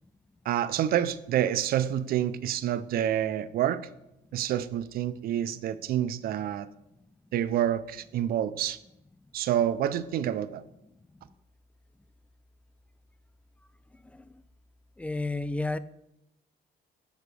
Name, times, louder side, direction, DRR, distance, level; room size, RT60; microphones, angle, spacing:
voice 1, 0.5-3.8 4.3-6.7 7.3-8.8 9.3-10.6, right 11 dB, 60° right, 0.5 m, -28 dB
voice 2, 15.0-15.8, left 2 dB, 10° left, 0.3 m, -30 dB
8.9 x 6.6 x 3.4 m
cardioid pair, 110°, 17 cm